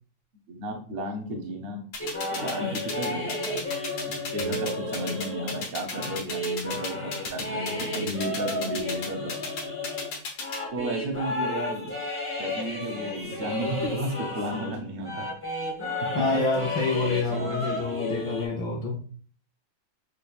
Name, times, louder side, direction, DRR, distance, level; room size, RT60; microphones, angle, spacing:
voice 1, 0.5-1.8 2.3-3.6 4.1-9.3 10.7-11.9 12.4-15.3 17.4-17.5, right 1 dB, 55° right, 3 dB, 0.6 m, -33 dB
sound 1, 1.9-10.6, left 4 dB, 85° left, 1.8 m, -33 dB
sound 2, 2.0-14.8 15.0-18.5, left 1 dB, 10° left, 0.6 m, -33 dB
voice 2, 16.1-19.0, left 3 dB, 65° left, 0 dB, 1.2 m, -27 dB
6.4 x 2.2 x 2.4 m, 0.43 s
omnidirectional pair, 2.1 m